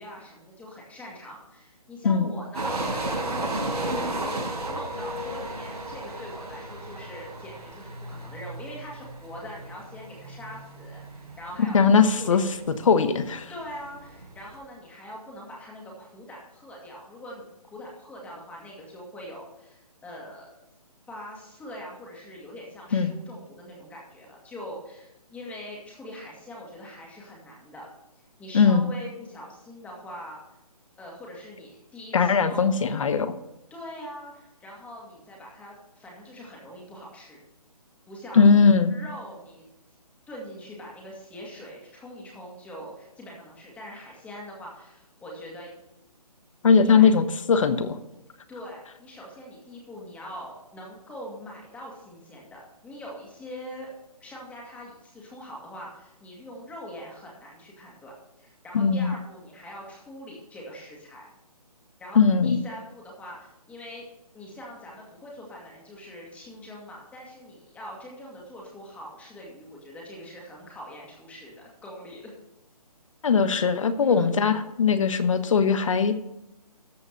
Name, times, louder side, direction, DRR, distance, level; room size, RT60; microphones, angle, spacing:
voice 1, 0.0-4.4 4.7-12.4 13.5-20.5 21.1-27.9 28.4-30.4 31.0-32.8 33.7-37.4 38.1-38.5 38.9-39.7 40.3-45.7 46.8-47.1 48.5-53.9 54.2-58.1 58.4-61.3 62.0-64.0 64.3-72.3 74.0-74.5, equal, 5° left, -3 dB, 2.2 m, -43 dB
sound 1, 2.5-14.6, right 1 dB, 70° right, 4.3 m, -34 dB
voice 2, 11.7-12.4 12.8-13.5 22.9-23.1 28.5-28.9 32.1-33.3 38.4-38.9 46.6-48.0 58.7-59.1 62.1-62.6 73.2-76.2, left 5 dB, 50° left, 11 dB, 1.2 m, -20 dB
13.5 x 4.9 x 6.6 m, 0.88 s
figure-of-eight pair, 155°, 20 cm